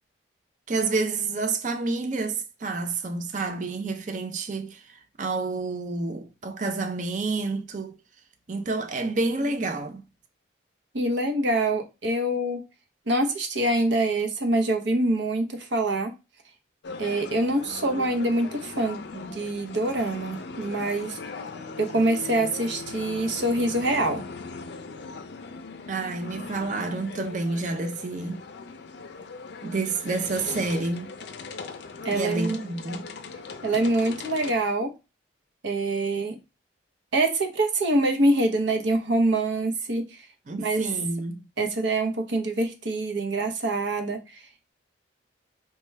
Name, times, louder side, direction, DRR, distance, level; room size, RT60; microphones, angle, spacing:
voice 1, 0.7-8.0 8.5-10.0 25.9-28.4 29.6-31.1 32.1-33.1 40.5-41.5, right 3 dB, 40° right, 0.4 m, -29 dB
voice 2, 10.9-12.6 13.1-16.1 17.0-21.2 21.8-24.2 32.0-32.6 33.6-34.9 35.6-36.4 37.1-40.2 40.6-40.8 41.6-44.4, right 2 dB, 75° right, 0.8 m, -25 dB
sound 1, 16.8-34.5, left 4 dB, 60° left, 0.4 m, -39 dB
4.4 x 2.2 x 3.2 m
head